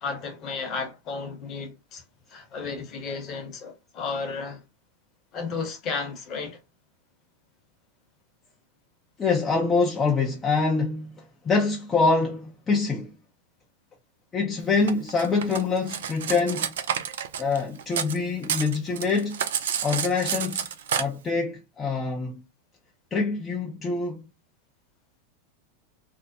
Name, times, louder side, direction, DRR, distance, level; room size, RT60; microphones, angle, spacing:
voice 1, 0.0-2.0 2.3-4.6 5.3-6.6, left 4 dB, 40° left, 0.9 m, -33 dB
voice 2, 9.2-13.1 14.3-16.7 17.4-19.4 19.8-20.7 20.9-22.4 23.1-24.3, left 4 dB, 20° left, 0.5 m, -25 dB
Cutlery silverware, 14.9-18.2 18.4-21.0, right 8 dB, 65° right, 0.3 m, -29 dB
2.6 x 2.0 x 2.6 m
figure-of-eight pair, 90°, 0 cm